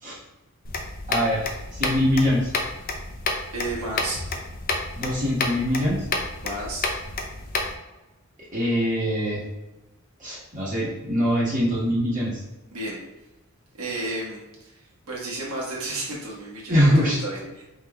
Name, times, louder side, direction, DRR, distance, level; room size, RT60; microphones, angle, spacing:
sound 1, 0.6-7.7, left 3 dB, 40° left, 0.5 m, -30 dB
voice 1, 1.1-2.5 5.0-6.0 8.5-9.4 10.2-12.4 16.7-17.2, equal, 35° right, -8 dB, 1.2 m, -23 dB
voice 2, 3.5-4.2 6.4-6.9 12.7-13.0 13.8-17.6, right 2 dB, 80° right, -4 dB, 1.3 m, -32 dB
5.0 x 3.5 x 2.3 m, 1.1 s
head